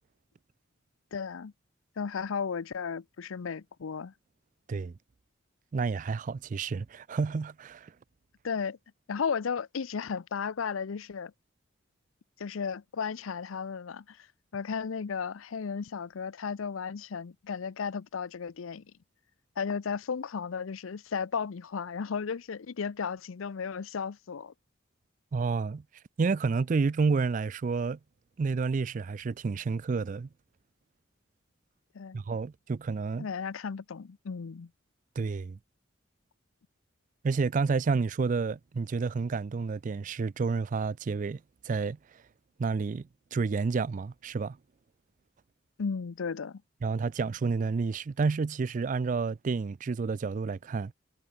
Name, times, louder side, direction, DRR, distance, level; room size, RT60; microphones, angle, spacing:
voice 1, 1.1-1.5 2.0-4.1 8.4-8.8 9.1-11.3 12.4-14.3 14.5-18.8 19.6-24.5 31.9-32.2 33.2-34.7 45.8-46.6, left 6 dB, 90° left, 0.5 m, -34 dB
voice 2, 5.7-7.9 25.3-25.8 26.2-28.0 28.4-30.3 32.1-33.3 35.2-35.6 37.2-42.0 42.6-44.6 46.8-50.9, right 4 dB, 40° right, 0.3 m, -30 dB
head